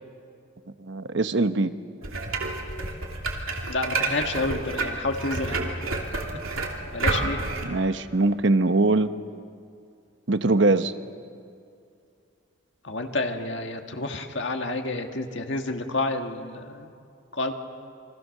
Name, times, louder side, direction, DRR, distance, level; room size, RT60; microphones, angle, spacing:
voice 1, 0.8-1.7 7.6-9.1 10.3-10.9, right 2 dB, 60° right, 10 dB, 1.0 m, -22 dB
sound 1, 2.0-7.6, right 3 dB, 90° right, 3.1 m, -29 dB
voice 2, 3.7-5.7 6.5-7.4 12.8-16.9 17.3-17.5, left 2 dB, 60° left, 4 dB, 1.9 m, -29 dB
29.0 x 24.5 x 6.7 m, 2.4 s
head